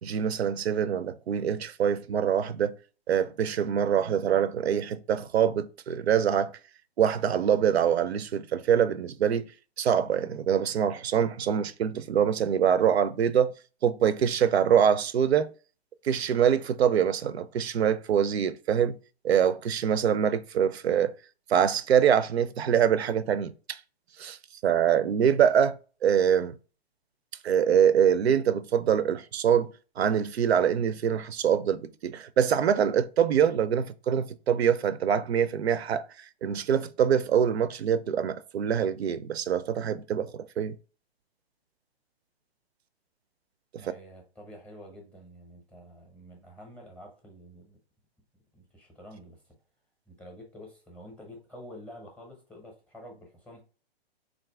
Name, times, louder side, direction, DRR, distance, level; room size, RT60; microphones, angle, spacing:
voice 1, 0.0-2.7 3.1-6.5 7.0-9.5 9.8-13.5 13.8-15.5 16.0-19.0 19.2-21.1 21.5-23.8 24.2-24.4 24.6-25.8 26.0-26.6 27.4-29.7 30.0-36.0 36.4-40.8, right 8 dB, 85° right, 0.5 m, -24 dB
voice 2, 43.8-47.8 48.5-49.4 50.1-53.6, equal, 5° left, 0.6 m, -48 dB
3.7 x 2.5 x 3.3 m
hypercardioid pair, 135°, 31 cm